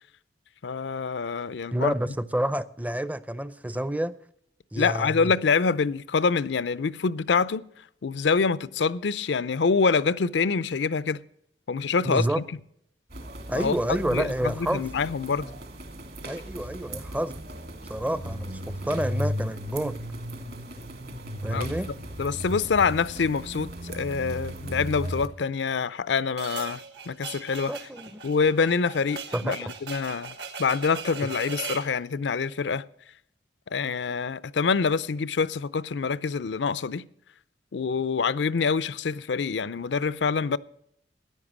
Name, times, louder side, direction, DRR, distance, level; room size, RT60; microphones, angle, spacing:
voice 1, 0.6-1.9 4.8-7.7 8.0-11.2 11.7-12.3 13.6-13.8 14.0-15.5 21.5-21.8 22.2-27.7 28.2-30.3 30.6-32.8 33.7-37.0 37.7-40.6, left 5 dB, 75° left, 0.5 m, -26 dB
voice 2, 1.7-4.1 4.7-5.3 12.0-12.4 13.5-14.9 16.2-17.4 17.9-19.9 21.4-21.9 27.7-28.2 29.3-29.7, right 1 dB, 10° right, 0.5 m, -29 dB
sound 1, 13.1-25.3, equal, 60° right, 1.8 m, -36 dB
sound 2, 26.4-31.9, right 5 dB, 75° right, 1.6 m, -39 dB
14.0 x 10.5 x 6.1 m
head